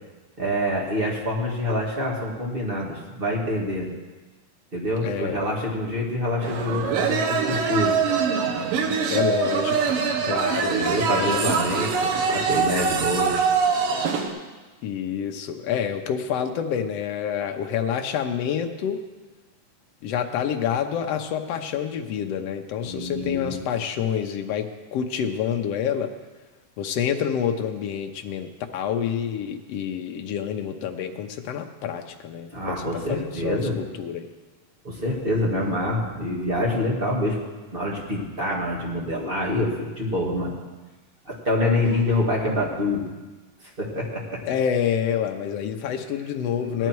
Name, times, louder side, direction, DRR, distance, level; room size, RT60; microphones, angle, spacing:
voice 1, 0.4-3.9 4.7-7.9 10.7-13.5 22.8-23.6 32.5-33.8 34.8-37.4 37.7-40.5 41.3-43.0 43.8-44.4 46.6-46.9, left 1 dB, 20° right, -3 dB, 2.0 m, -26 dB
voice 2, 5.0-5.4 9.1-10.0 10.2-10.7 11.1-11.5 14.8-19.0 20.0-26.1 26.8-32.7 33.1-34.3 44.5-46.9, left 8 dB, 75° left, 5 dB, 1.4 m, -27 dB
sound 1, 6.4-14.3, right 5 dB, 80° right, 2.9 m, -23 dB
17.5 x 11.5 x 4.6 m, 1.3 s
omnidirectional pair, 3.8 m